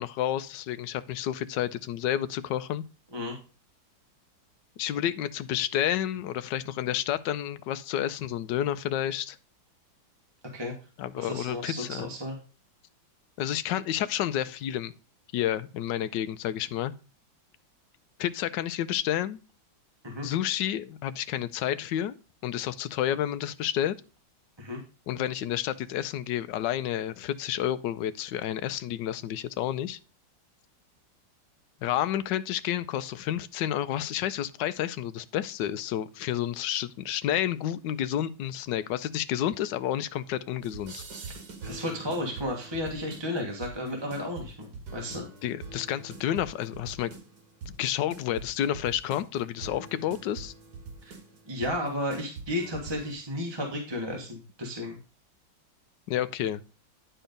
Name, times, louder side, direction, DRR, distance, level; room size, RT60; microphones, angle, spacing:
voice 1, 0.0-2.8 4.8-9.4 11.0-12.1 13.4-14.9 15.3-16.9 18.2-19.4 20.2-22.1 22.4-24.0 25.1-30.0 31.8-41.0 45.4-47.2 47.7-50.5 56.1-56.6, left 11 dB, 70° left, 1.2 m, -30 dB
voice 2, 11.2-12.4 20.0-20.3 24.6-24.8 41.2-41.3 41.6-45.3 51.0-51.1 51.5-55.0, left 1 dB, 15° right, 1.4 m, -33 dB
sound 1, 40.6-53.1, right 4 dB, 55° right, 2.2 m, -44 dB
10.0 x 4.5 x 5.1 m
omnidirectional pair, 2.1 m